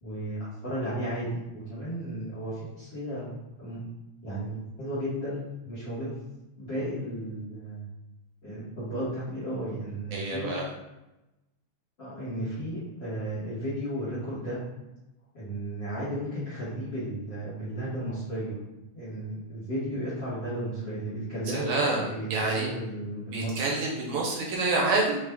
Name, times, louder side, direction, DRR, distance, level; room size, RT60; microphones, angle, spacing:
voice 1, 0.0-3.3 3.6-3.8 4.2-6.1 6.6-7.8 8.4-10.5 12.0-14.6 15.3-18.6 18.9-23.6, right 1 dB, 50° left, -9 dB, 1.5 m, -34 dB
voice 2, 10.1-10.7 21.5-22.7 23.3-25.2, right 3 dB, 75° right, -2 dB, 1.9 m, -27 dB
5.0 x 2.4 x 3.4 m, 0.98 s
omnidirectional pair, 3.6 m